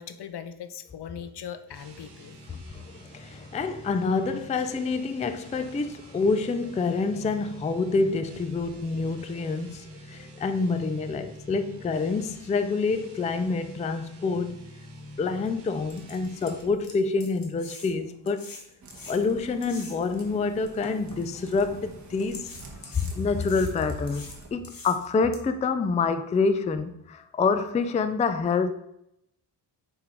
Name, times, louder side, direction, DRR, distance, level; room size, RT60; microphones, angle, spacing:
voice 1, 0.0-2.4, left 8 dB, 70° left, 0.7 m, -40 dB
sound 1, 1.6-16.8, equal, 70° right, 1.8 m, -48 dB
voice 2, 2.5-14.6 15.2-18.5 19.1-22.5 22.8-28.7, left 4 dB, 20° left, 0.3 m, -27 dB
sound 2, 14.9-15.0 15.5-15.6 15.9-20.2 20.8-21.8 22.3-25.4, left 3 dB, 55° left, 1.4 m, -45 dB
sound 3, 18.8-24.5, right 3 dB, 40° right, 1.3 m, -48 dB
6.7 x 4.7 x 5.1 m
wide cardioid pair, 170°, 41 cm